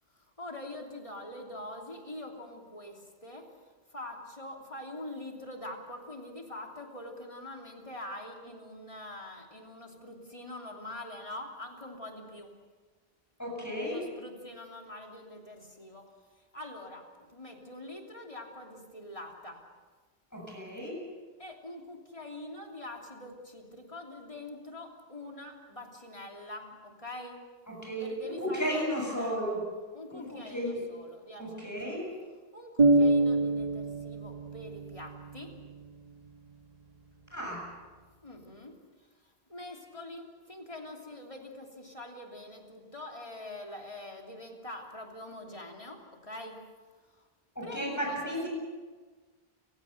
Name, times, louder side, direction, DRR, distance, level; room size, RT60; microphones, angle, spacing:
voice 1, 0.1-3.5 3.9-12.5 13.9-16.1 16.3-19.6 21.4-27.4 28.0-29.5 29.9-31.7 32.5-35.5 38.2-38.7 39.2-46.6 47.1-47.3 47.6-48.5, left 1 dB, 30° left, 1 dB, 3.1 m, -44 dB
voice 2, 13.4-14.0 20.3-21.0 27.7-29.6 30.1-30.8 31.4-32.1 37.3-37.6 47.6-48.5, equal, 15° left, -1 dB, 7.3 m, -34 dB
sound 1, 32.8-36.6, right 2 dB, 35° right, 1.7 m, -27 dB
29.5 x 16.5 x 6.7 m, 1.4 s
omnidirectional pair, 1.1 m